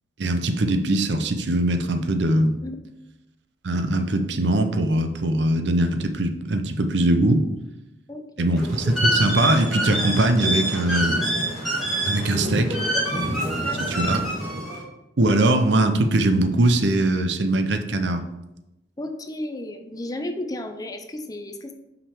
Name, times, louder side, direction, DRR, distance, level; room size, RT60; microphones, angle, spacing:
voice 1, 0.2-2.6 3.6-7.4 8.4-11.2 12.1-12.8 13.8-14.2 15.2-18.2, right 1 dB, 70° right, 8 dB, 0.7 m, -21 dB
voice 2, 8.1-8.6 13.5-14.1 19.0-21.7, left 1 dB, 20° left, 6 dB, 0.6 m, -34 dB
sound 1, 8.6-14.8, right 1 dB, ahead, 2.3 m, -25 dB
5.9 x 5.2 x 4.8 m, 0.95 s
head